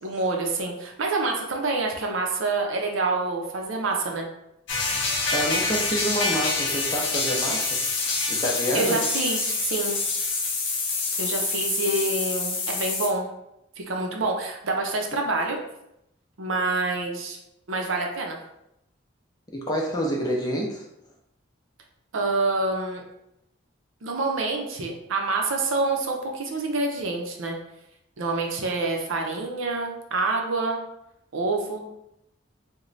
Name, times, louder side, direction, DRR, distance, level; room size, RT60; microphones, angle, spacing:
voice 1, 0.0-4.3 8.1-8.3 8.7-10.0 11.2-13.3 13.8-15.6 16.4-17.4 17.7-18.4 22.1-23.0 24.0-27.6 28.2-30.8 31.3-32.0, right 3 dB, 75° right, 1 dB, 0.6 m, -27 dB
sound 1, 4.7-13.1, left 3 dB, 60° left, 0.7 m, -26 dB
voice 2, 5.3-7.8 8.3-9.0 19.5-20.9, equal, 20° left, -1 dB, 0.5 m, -27 dB
3.1 x 2.2 x 3.8 m, 0.82 s
head